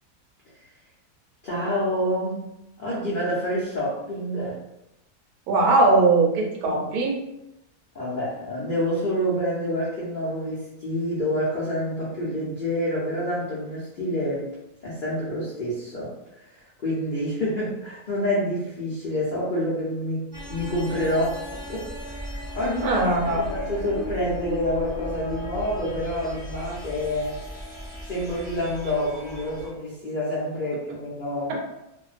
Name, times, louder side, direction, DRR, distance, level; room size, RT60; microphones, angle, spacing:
voice 1, 1.4-4.6 6.7-6.8 7.9-14.5 14.8-21.9 22.1-27.4 28.1-31.6, equal, 70° left, -8 dB, 0.4 m, -28 dB
voice 2, 5.5-7.2 22.8-23.4 31.5-31.6, right 3 dB, 75° right, 0 dB, 1.1 m, -20 dB
sound 1, 20.3-29.7, equal, 45° right, 0.3 m, -36 dB
2.5 x 2.1 x 2.4 m, 0.90 s
omnidirectional pair, 1.6 m